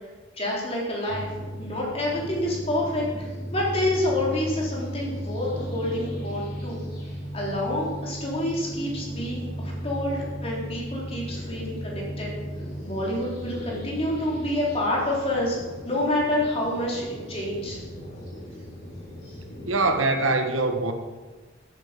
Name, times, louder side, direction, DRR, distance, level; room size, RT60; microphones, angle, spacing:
voice 1, 0.4-1.3 1.6-6.8 7.3-12.3 12.8-15.6 15.8-17.8 19.2-19.3, left 1 dB, 30° left, -4 dB, 3.9 m, -28 dB
sound 1, 1.1-19.8, equal, 55° left, 4.0 m, -37 dB
sound 2, 5.4-12.8, right 2 dB, 10° right, 5.0 m, -38 dB
voice 2, 19.6-20.9, right 2 dB, 90° right, 6 dB, 1.4 m, -23 dB
14.5 x 9.1 x 5.3 m, 1.3 s
head